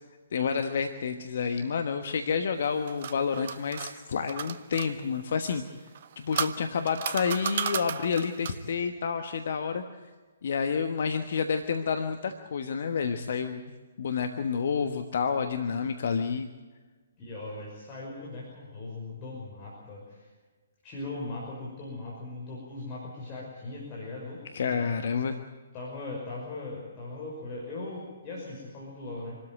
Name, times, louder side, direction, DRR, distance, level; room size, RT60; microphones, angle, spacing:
voice 1, 0.3-5.6 6.2-9.8 10.4-16.5 24.5-25.4, left 6 dB, 50° left, 7 dB, 1.2 m, -29 dB
sound 1, 2.6-4.9 5.9-8.7, right 8 dB, 45° right, 0.9 m, -34 dB
voice 2, 17.2-20.3 20.8-24.9 25.7-29.4, left 2 dB, 25° left, -4 dB, 5.8 m, -39 dB
26.5 x 13.0 x 9.1 m, 1.4 s
figure-of-eight pair, 125°, 0 cm